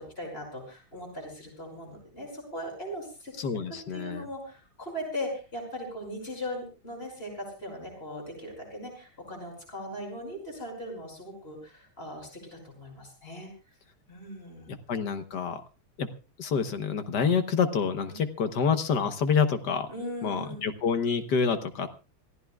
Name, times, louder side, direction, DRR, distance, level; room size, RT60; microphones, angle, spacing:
voice 1, 0.0-3.3 3.9-13.5 14.1-14.7 18.1-18.2 19.9-20.7, equal, 25° left, 2 dB, 6.1 m, -39 dB
voice 2, 3.4-4.2 14.7-15.6 16.0-16.1 16.4-19.9 20.2-21.9, left 6 dB, 55° left, 9 dB, 1.5 m, -27 dB
27.0 x 15.0 x 2.4 m, 0.33 s
omnidirectional pair, 2.3 m